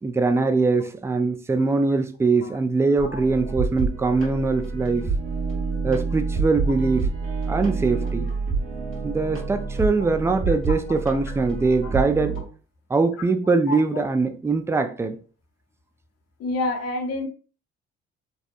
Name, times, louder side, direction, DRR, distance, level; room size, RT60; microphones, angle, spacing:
voice 1, 0.0-5.0 5.8-7.1 7.5-8.3 9.0-12.4 12.9-15.2, right 3 dB, 10° right, 0.4 m, -22 dB
sound 1, 3.0-12.4, right 4 dB, 45° right, 1.3 m, -28 dB
voice 2, 10.5-11.0 11.8-12.0 13.7-14.0 16.4-17.3, left 2 dB, 55° left, 0.8 m, -30 dB
2.7 x 2.1 x 2.5 m
hypercardioid pair, 55°, 29 cm